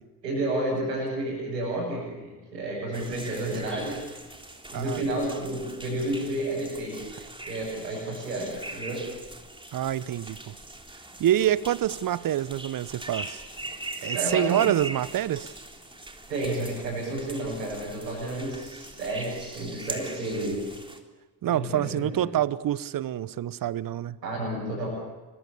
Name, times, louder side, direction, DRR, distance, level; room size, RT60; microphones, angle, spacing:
voice 1, 0.2-4.1 4.7-7.0 7.5-9.0 14.1-14.6 16.3-20.6 21.4-22.3 24.2-24.9, right 1 dB, 85° right, -6 dB, 7.3 m, -31 dB
sound 1, 2.9-21.0, right 2 dB, 10° right, 3.7 m, -41 dB
voice 2, 9.7-10.5 11.2-13.4 14.0-15.5 21.4-24.2, right 11 dB, 45° right, 19 dB, 1.1 m, -26 dB
26.5 x 24.0 x 7.0 m, 1.2 s
figure-of-eight pair, 50°, 48 cm